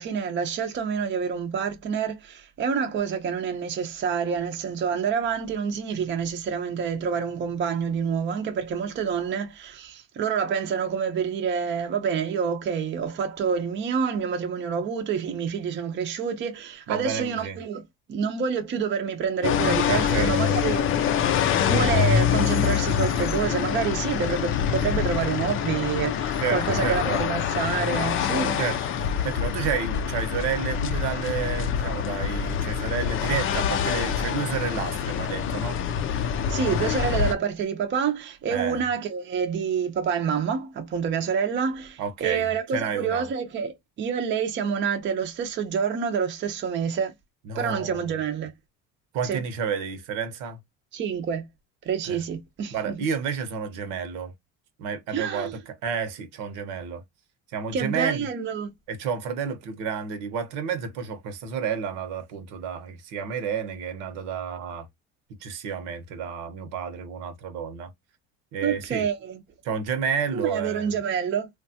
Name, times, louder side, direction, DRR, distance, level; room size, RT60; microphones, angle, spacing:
voice 1, 0.0-17.8 18.1-21.1 21.7-28.6 36.5-47.1 47.6-48.5 49.2-49.4 50.9-51.4 51.9-53.0 55.1-55.5 57.7-58.7 68.6-69.4 70.3-71.5, right 6 dB, 35° right, 0.6 m, -27 dB
voice 2, 16.9-17.6 19.9-20.5 26.4-27.2 28.6-35.8 38.5-38.8 42.0-43.3 47.4-48.0 49.1-50.6 52.1-52.2 52.7-54.3 54.8-57.0 57.5-58.2 58.9-64.9 65.4-67.9 68.5-69.1 69.6-70.9, right 6 dB, 75° right, 0.9 m, -30 dB
sound 1, 19.4-37.3, left 8 dB, 40° left, 0.5 m, -25 dB
3.2 x 2.3 x 2.7 m
cardioid pair, 120°, 31 cm